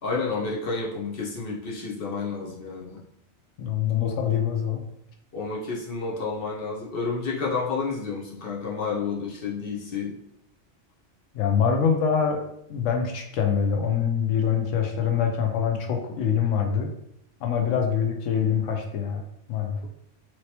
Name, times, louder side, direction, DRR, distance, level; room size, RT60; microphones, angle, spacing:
voice 1, 0.0-3.0 5.3-10.1, left 4 dB, 55° left, -3 dB, 0.8 m, -30 dB
voice 2, 3.6-4.8 11.3-12.4 12.7-16.9 17.4-19.9, left 7 dB, 85° left, 4 dB, 0.9 m, -24 dB
3.0 x 2.9 x 2.8 m, 0.74 s
omnidirectional pair, 1.3 m